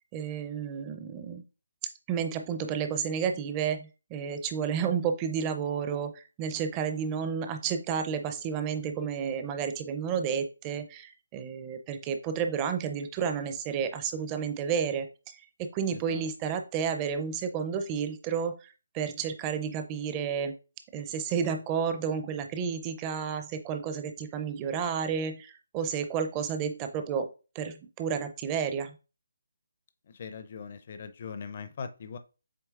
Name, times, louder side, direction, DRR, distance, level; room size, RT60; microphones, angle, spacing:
voice 1, 0.1-1.4 2.1-20.5 20.9-27.3 27.5-29.0, right 7 dB, 20° right, 7 dB, 0.5 m, -31 dB
voice 2, 15.9-16.2 30.1-32.2, left 6 dB, 45° left, 9 dB, 0.5 m, -41 dB
7.5 x 3.0 x 2.4 m, 0.33 s
figure-of-eight pair, 155°, 0 cm